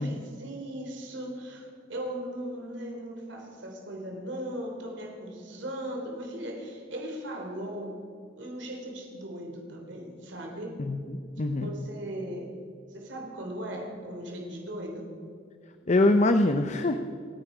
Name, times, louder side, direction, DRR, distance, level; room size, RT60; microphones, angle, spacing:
voice 1, 0.0-7.9 8.4-10.8 11.6-12.5 12.9-15.1, right 1 dB, 75° right, 1 dB, 3.4 m, -38 dB
voice 2, 10.9-11.7 15.9-17.1, left 2 dB, 40° left, 8 dB, 0.7 m, -24 dB
28.0 x 9.8 x 5.0 m, 2.3 s
head